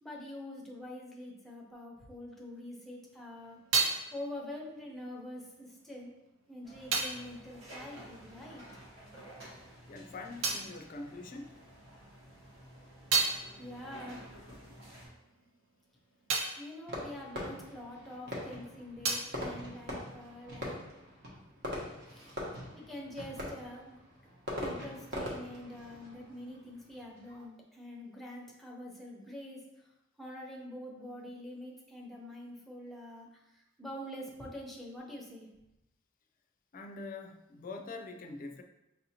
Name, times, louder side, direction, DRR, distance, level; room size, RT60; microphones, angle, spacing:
voice 1, 0.0-3.6 4.1-6.1 6.5-8.6 13.6-14.3 16.6-20.8 21.6-21.7 22.1-22.4 22.7-24.0 24.6-29.9 30.2-35.5, left 1 dB, ahead, -2 dB, 0.7 m, -45 dB
sound 1, 2.9-8.9 9.2-11.9 12.3-18.3 18.5-20.6, right 4 dB, 70° right, 0.6 m, -37 dB
sound 2, 6.6-15.1, equal, 90° right, 1.5 m, -52 dB
voice 2, 9.9-11.6 36.7-38.6, left 3 dB, 45° left, 5 dB, 0.4 m, -44 dB
Fireworks, 16.9-27.4, left 1 dB, 55° right, 1.0 m, -42 dB
5.5 x 2.7 x 2.8 m, 0.90 s
head